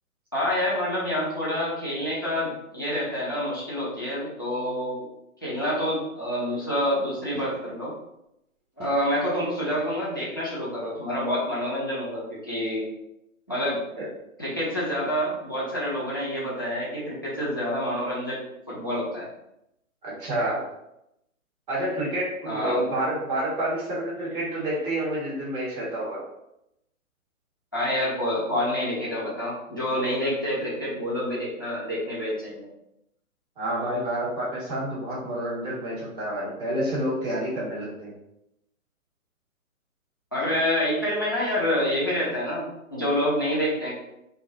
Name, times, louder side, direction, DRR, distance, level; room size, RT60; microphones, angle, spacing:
voice 1, 0.3-5.0 5.4-7.9 8.8-12.8 13.5-13.8 14.4-18.4 18.7-19.3 22.5-22.8 27.7-32.7 40.3-43.9, equal, 20° left, -8 dB, 0.3 m, -27 dB
sound 1, 7.3-7.8 8.6-9.2 10.5-10.6 12.4-12.5 12.7-12.8, right 2 dB, 90° right, 1.3 m, -44 dB
voice 2, 20.0-20.6 21.7-26.2 33.6-38.1, right 1 dB, 35° right, -7 dB, 1.4 m, -29 dB
2.7 x 2.3 x 2.5 m, 0.83 s
figure-of-eight pair, 130°, 42 cm